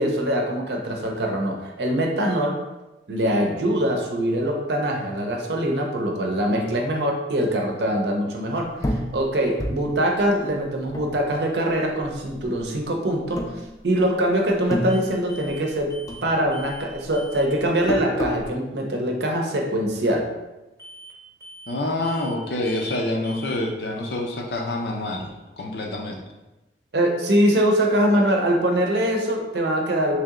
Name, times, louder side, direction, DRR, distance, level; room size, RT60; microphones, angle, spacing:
voice 1, 0.0-2.6 3.1-13.4 13.8-15.9 16.2-20.3 26.9-30.2, right 1 dB, 70° right, 1 dB, 0.6 m, -23 dB
sound 1, 8.8-11.7 12.0-12.8 13.3-14.2 14.5-15.8 16.1-18.5, equal, 20° left, 0.3 m, -30 dB
sound 2, 14.9-15.0 15.3-15.6 15.9-16.3 16.5-16.9 17.1-17.5 20.8-21.1 21.4-21.8 22.0-22.4 22.6-23.0 23.2-23.6, right 1 dB, 20° right, 0.8 m, -43 dB
voice 2, 21.7-26.2, left 1 dB, 65° left, 1 dB, 0.6 m, -27 dB
3.3 x 2.8 x 3.6 m, 1.1 s
head